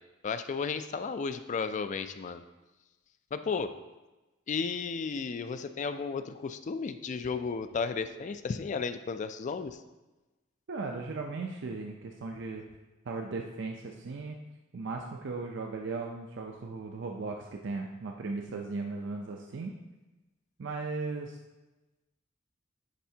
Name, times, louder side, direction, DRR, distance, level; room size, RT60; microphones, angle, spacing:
voice 1, 0.2-2.4 3.3-3.7 4.5-9.8, left 5 dB, 40° left, 10 dB, 0.3 m, -33 dB
voice 2, 10.7-12.6 13.1-14.4 14.7-19.7 20.6-21.4, right 3 dB, 65° right, 2 dB, 0.5 m, -37 dB
10.0 x 4.2 x 2.7 m, 1.1 s
head